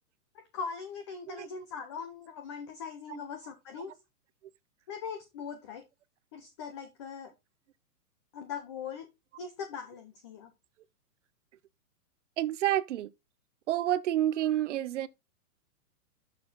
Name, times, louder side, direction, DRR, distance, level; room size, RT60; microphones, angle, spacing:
voice 1, 0.3-3.9 4.9-5.8 6.3-7.3 8.3-9.1 9.4-10.5, left 6 dB, 20° left, 0.5 m, -40 dB
voice 2, 12.4-13.1 13.7-15.1, right 12 dB, 50° right, 0.7 m, -29 dB
7.8 x 6.4 x 3.8 m
hypercardioid pair, 160°, 46 cm